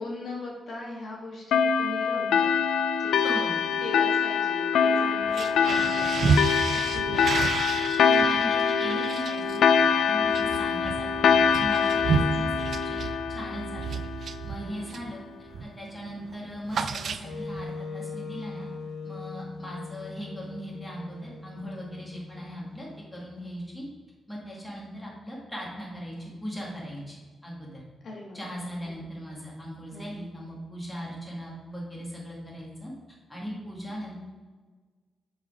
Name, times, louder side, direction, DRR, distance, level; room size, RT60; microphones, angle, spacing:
voice 1, 0.0-2.5 2.9-3.1 3.8-7.3 11.9-12.0 14.6-14.9 28.0-28.4 28.8-29.0 29.9-30.0, left 2 dB, 55° left, -2 dB, 1.4 m, -40 dB
sound 1, 1.5-14.6, left 6 dB, 85° left, 0.3 m, -24 dB
voice 2, 3.2-3.7 7.9-12.5 12.8-13.0 13.3-13.8 14.4-15.2 15.6-18.7 19.0-23.8 24.3-27.8 28.3-34.2, equal, 10° left, -4 dB, 1.7 m, -39 dB
sound 2, 5.2-15.2 15.5-15.8 16.1-17.6, right 5 dB, 55° right, 0.3 m, -31 dB
Wind instrument woodwind instrument, 17.2-23.3, left 4 dB, 70° left, 0.9 m, -40 dB
6.3 x 3.9 x 4.8 m, 1.4 s
wide cardioid pair, 145°, 0 cm